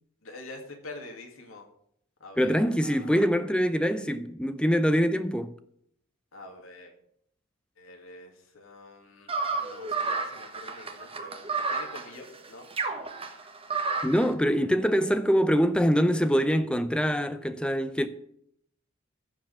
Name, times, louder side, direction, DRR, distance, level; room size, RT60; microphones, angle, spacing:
voice 1, 0.2-1.7 2.2-2.6 2.8-3.3 6.3-6.9 7.8-12.7, left 2 dB, 75° left, 2.2 m, -46 dB
voice 2, 2.4-5.5 14.0-18.1, equal, 5° left, 0.6 m, -24 dB
sound 1, 9.3-14.3, right 4 dB, 25° right, 1.2 m, -31 dB
14.5 x 5.0 x 7.5 m
head